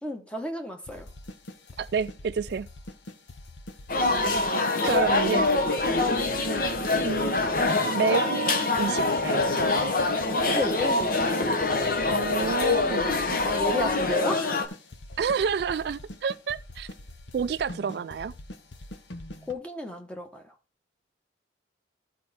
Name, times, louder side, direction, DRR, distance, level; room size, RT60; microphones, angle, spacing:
voice 1, 0.0-1.1 4.4-5.2 5.7-5.8 10.5-11.6 13.4-14.8 19.4-20.5, left 1 dB, 5° left, 1.2 m, -33 dB
sound 1, 0.8-19.5, left 1 dB, 80° left, 1.1 m, -43 dB
voice 2, 1.8-2.7 4.8-5.4 7.0-7.4 7.9-9.4 12.1-13.2 15.2-16.9 17.3-18.3, right 6 dB, 60° right, 0.3 m, -29 dB
sound 2, 3.9-14.7, left 2 dB, 50° left, 1.0 m, -25 dB
13.0 x 4.4 x 4.2 m
head